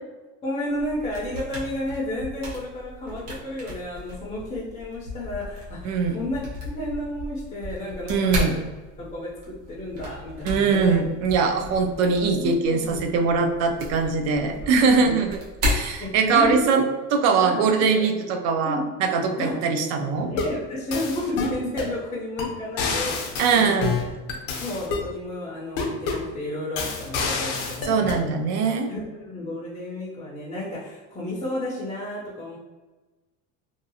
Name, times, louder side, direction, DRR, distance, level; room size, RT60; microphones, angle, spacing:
voice 1, 0.4-8.6 9.0-11.0 11.6-11.7 12.3-13.0 14.2-15.2 16.0-16.8 17.4-18.1 18.6-18.8 19.4-19.5 20.3-23.2 23.5-23.9 24.6-28.2 28.9-32.6, left 1 dB, 20° left, -7 dB, 0.5 m, -32 dB
sound 1, 0.7-16.7, left 1 dB, 75° right, 1.2 m, -35 dB
voice 2, 5.8-6.2 8.1-8.6 10.5-16.8 17.1-20.3 23.4-23.9 27.8-28.9, right 5 dB, 50° right, 5 dB, 0.4 m, -22 dB
sound 2, 20.2-20.6 20.9-22.0 22.4-22.5 22.8-25.1 25.8-26.3 26.8-28.2, left 4 dB, 65° left, 0.7 m, -28 dB
2.7 x 2.4 x 2.6 m, 1.2 s
cardioid pair, 145°, 36 cm